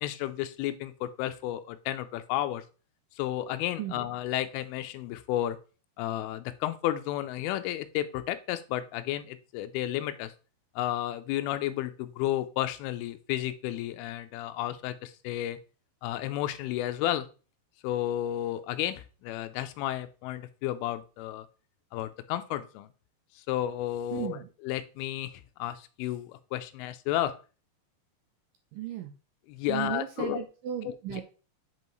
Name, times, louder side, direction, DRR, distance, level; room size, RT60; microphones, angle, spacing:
voice 1, 0.0-2.6 3.2-5.6 6.0-10.3 10.8-15.6 16.0-17.3 17.8-21.5 21.9-22.9 23.5-25.3 25.6-27.3 29.5-30.4 30.8-31.2, left 13 dB, 85° left, 10 dB, 2.4 m, -32 dB
voice 2, 24.1-24.5 28.7-29.1 29.7-31.2, right 11 dB, 80° right, 4 dB, 2.0 m, -35 dB
7.6 x 5.3 x 3.1 m, 0.35 s
omnidirectional pair, 4.5 m